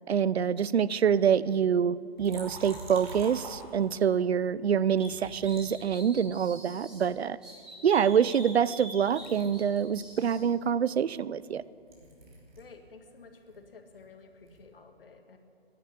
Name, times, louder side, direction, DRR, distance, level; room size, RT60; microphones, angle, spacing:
voice 1, 0.1-7.4 7.8-11.6, right 8 dB, 80° right, 19 dB, 0.6 m, -26 dB
Liquid, 2.2-4.1 5.0-6.5 7.1-8.8 9.1-12.8 13.1-14.7, right 2 dB, 45° right, 3.5 m, -48 dB
sound 1, 5.0-7.0 7.4-10.4, right 1 dB, ahead, 0.8 m, -46 dB
voice 2, 12.6-15.4, left 4 dB, 60° left, 5 dB, 1.9 m, -52 dB
14.0 x 10.5 x 8.4 m, 2.6 s
hypercardioid pair, 160°, 31 cm